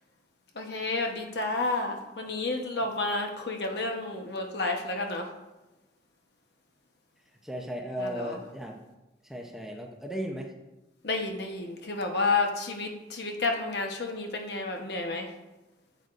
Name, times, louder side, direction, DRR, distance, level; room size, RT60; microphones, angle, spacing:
voice 1, 0.5-5.3 8.0-8.4 11.0-15.3, left 3 dB, 65° left, 3 dB, 1.0 m, -30 dB
voice 2, 7.4-8.8 9.2-10.5, equal, ahead, 1 dB, 0.7 m, -36 dB
8.5 x 8.0 x 2.5 m, 1.0 s
head